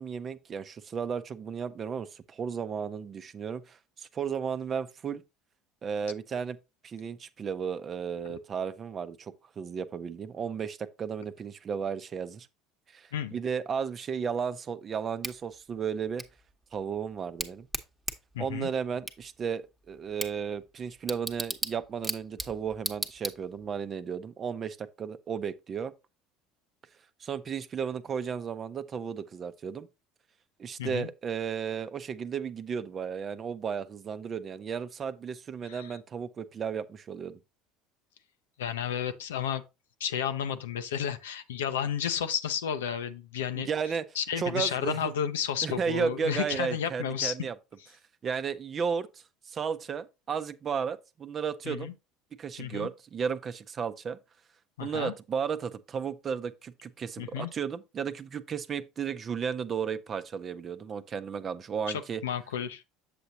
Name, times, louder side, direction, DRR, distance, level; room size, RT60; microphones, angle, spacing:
voice 1, 0.0-5.2 5.8-6.6 6.8-12.5 12.9-16.2 16.7-17.7 18.4-25.9 27.2-29.9 30.6-37.4 43.5-44.0 44.4-45.1 45.6-47.5 48.2-51.9 52.4-54.2 54.8-62.2, right 6 dB, 40° right, 0.7 m, -34 dB
Bicycle / Tick, 15.2-23.8, right 2 dB, 10° right, 1.1 m, -39 dB
voice 2, 18.3-18.7 30.8-31.1 35.6-35.9 38.6-39.6 40.0-43.7 44.2-47.4 51.6-51.9 52.6-52.9 54.8-55.1 57.2-57.5 61.9-62.8, left 8 dB, 80° left, 0.7 m, -32 dB
7.8 x 6.7 x 2.7 m
hypercardioid pair, 70°, 0 cm